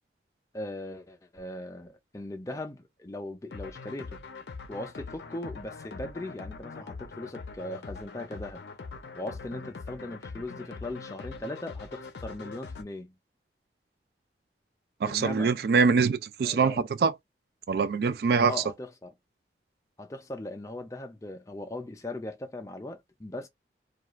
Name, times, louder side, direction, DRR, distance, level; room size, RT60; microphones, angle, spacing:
voice 1, 0.5-4.2 4.7-8.6 9.1-13.2 15.0-15.6 15.9-16.0 16.4-16.8 18.4-19.1 20.0-23.5, left 1 dB, 20° left, 0.4 m, -39 dB
sound 1, 3.5-12.8, left 4 dB, 75° left, 0.5 m, -42 dB
voice 2, 15.0-17.1 17.7-18.6, right 5 dB, 60° right, 0.3 m, -24 dB
2.3 x 2.3 x 3.0 m
head